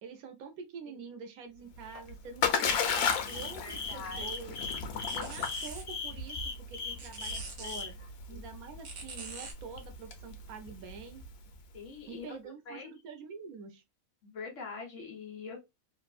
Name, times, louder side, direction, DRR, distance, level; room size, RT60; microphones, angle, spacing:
voice 1, 0.0-4.6 5.1-7.9 8.3-11.2 12.1-13.8, right 5 dB, 80° right, 1.1 m, -46 dB
Splash splatter, 1.7-11.6, left 6 dB, 90° left, 1.1 m, -35 dB
voice 2, 3.3-4.3 7.6-7.9 8.3-8.4 11.7-12.2 12.7-12.9 14.2-15.6, left 5 dB, 60° left, 1.3 m, -44 dB
sound 1, 3.3-7.9, left 4 dB, 40° left, 1.3 m, -38 dB
sound 2, 3.9-9.5, right 3 dB, 50° right, 1.0 m, -47 dB
3.3 x 2.1 x 2.3 m
omnidirectional pair, 1.5 m